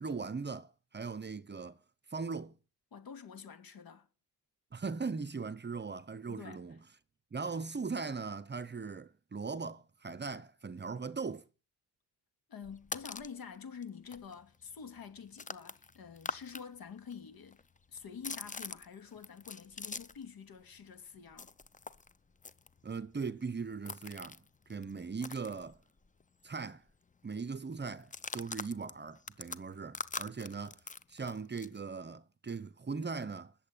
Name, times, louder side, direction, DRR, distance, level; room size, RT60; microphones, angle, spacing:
voice 1, 0.0-1.8 2.1-2.6 4.7-6.8 7.3-11.5 22.8-25.8 26.4-26.8 27.2-30.8 31.1-33.5, right 4 dB, 25° right, 0.9 m, -39 dB
voice 2, 2.9-4.1 6.3-6.6 12.5-17.6 17.9-21.5, left 6 dB, 60° left, 2.7 m, -47 dB
sound 1, 12.6-13.4 13.8-13.9 14.1-16.6 16.9-20.3 20.6-26.2 26.5-26.6 26.9-27.2 28.0-31.8, left 4 dB, 20° left, 0.7 m, -44 dB
20.5 x 7.8 x 8.8 m
cardioid pair, 115°, 40 cm